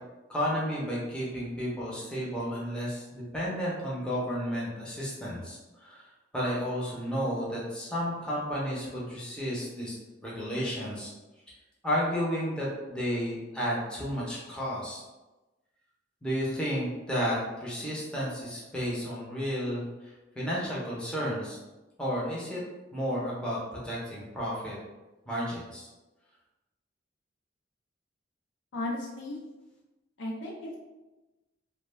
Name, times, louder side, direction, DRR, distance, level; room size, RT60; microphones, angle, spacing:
voice 1, 0.3-6.1 6.3-10.0 10.2-11.1 11.8-15.0 16.2-21.6 22.0-22.6 22.9-23.6 23.8-24.8 25.3-25.9, equal, 5° left, -6 dB, 0.6 m, -32 dB
voice 2, 28.7-29.4 30.2-30.8, left 1 dB, 80° left, -3 dB, 0.5 m, -35 dB
2.3 x 2.1 x 3.1 m, 1.1 s
head